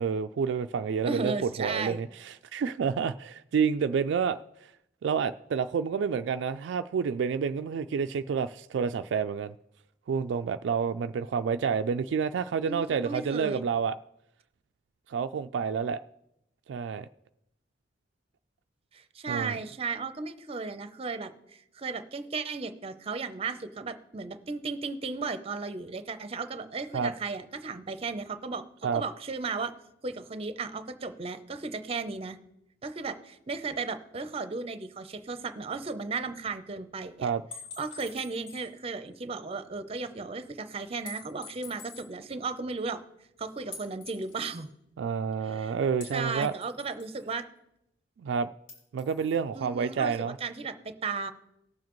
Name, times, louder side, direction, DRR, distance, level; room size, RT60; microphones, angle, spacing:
voice 1, 0.0-4.4 5.0-9.5 10.1-14.0 15.1-16.0 16.7-17.1 19.3-19.6 26.9-27.1 28.8-29.0 37.2-37.4 45.0-46.5 48.2-48.5 48.9-50.4, right 6 dB, 70° right, 10 dB, 0.3 m, -29 dB
voice 2, 1.0-2.0 12.7-13.6 18.9-28.6 28.9-29.7 30.0-32.4 32.8-37.3 37.8-43.0 43.4-44.7 45.4-45.7 46.1-47.5 49.5-51.3, right 4 dB, 30° right, 10 dB, 0.6 m, -35 dB
sound 1, 37.5-38.8 39.1-39.2 41.1-42.1 43.7-44.7 46.0-47.3 48.7-49.4, left 5 dB, 80° left, 3.1 m, -46 dB
18.0 x 7.3 x 3.1 m, 0.81 s
head